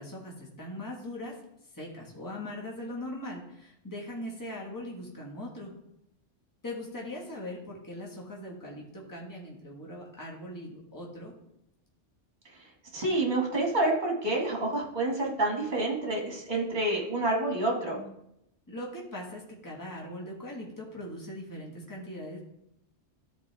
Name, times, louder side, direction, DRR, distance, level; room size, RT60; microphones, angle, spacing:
voice 1, 0.0-1.3 1.7-5.7 6.6-11.3 18.7-22.4, left 1 dB, 15° left, -3 dB, 1.6 m, -40 dB
voice 2, 12.9-18.0, right 2 dB, 40° right, -1 dB, 2.2 m, -28 dB
13.5 x 4.5 x 3.4 m, 0.79 s
omnidirectional pair, 1.2 m